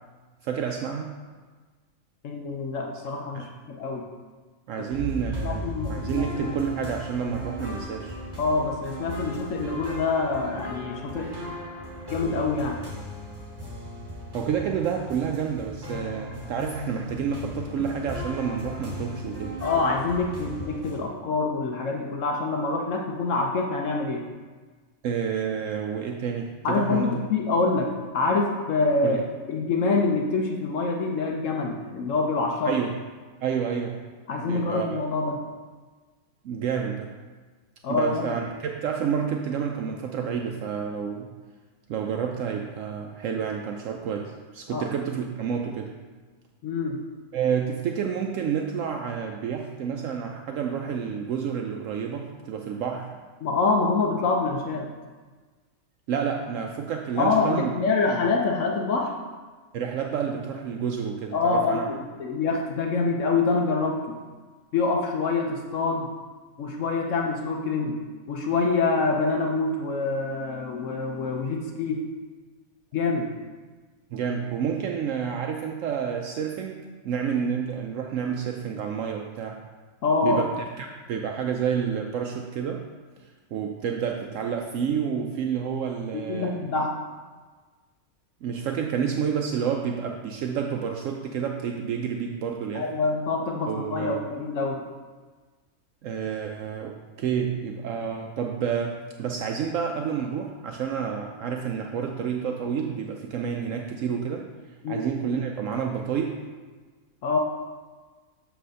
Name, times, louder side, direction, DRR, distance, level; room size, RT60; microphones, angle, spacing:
voice 1, 0.4-1.1 3.3-3.5 4.7-5.6 5.9-8.2 14.3-19.6 25.0-27.1 29.0-29.2 32.6-32.9 33.4-34.0 34.4-35.0 36.4-37.1 37.9-41.3 41.9-45.9 47.3-53.1 56.1-57.7 58.1-58.2 59.7-61.8 74.1-79.6 80.2-80.6 81.1-82.8 83.2-86.5 88.4-92.9 93.7-94.2 96.0-104.5 104.9-106.4, right 7 dB, 70° right, 2 dB, 0.9 m, -29 dB
voice 2, 2.2-4.0 5.1-5.2 5.4-6.6 8.4-11.3 12.1-12.8 19.6-24.3 26.6-29.2 29.5-32.7 34.3-35.4 37.8-38.4 44.7-44.9 46.6-47.0 53.4-54.9 57.2-59.2 61.3-64.2 64.7-66.1 66.6-68.0 68.3-72.0 72.9-73.3 80.0-80.4 86.1-87.0 92.7-94.8 104.8-105.0 107.2-107.4, left 3 dB, 70° left, 2 dB, 1.0 m, -26 dB
sound 1, 4.9-21.0, equal, 20° right, 1.2 m, -37 dB
7.5 x 3.4 x 6.4 m, 1.4 s
omnidirectional pair, 1.5 m